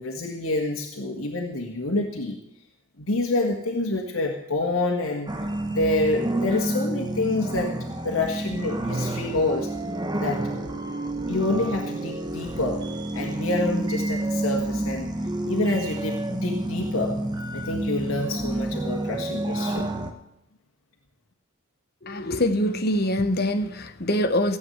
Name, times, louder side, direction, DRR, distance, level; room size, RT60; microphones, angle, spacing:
voice 1, 0.0-2.4 3.0-5.3 5.7-7.7 8.0-9.7 10.2-10.5 11.3-12.8 13.1-15.1 15.4-17.1 17.5-19.9, left 2 dB, 70° left, 1 dB, 1.8 m, -27 dB
sound 1, 5.3-20.1, right 1 dB, 20° right, 1.1 m, -29 dB
voice 2, 22.0-24.6, left 1 dB, 45° left, 8 dB, 1.2 m, -24 dB
16.0 x 8.5 x 7.9 m, 0.81 s
head